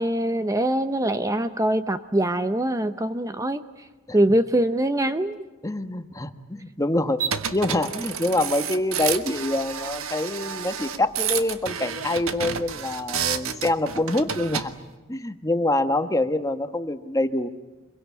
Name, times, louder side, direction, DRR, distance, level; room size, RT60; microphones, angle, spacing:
voice 1, 0.0-3.9 4.1-5.4, right 1 dB, 15° right, 10 dB, 0.7 m, -23 dB
voice 2, 5.6-7.2 7.5-14.7 15.1-17.5, left 2 dB, 15° left, 9 dB, 1.2 m, -25 dB
sound 1, 7.2-14.7, right 7 dB, 90° right, 1.5 m, -30 dB
25.5 x 23.0 x 8.4 m, 1.2 s
head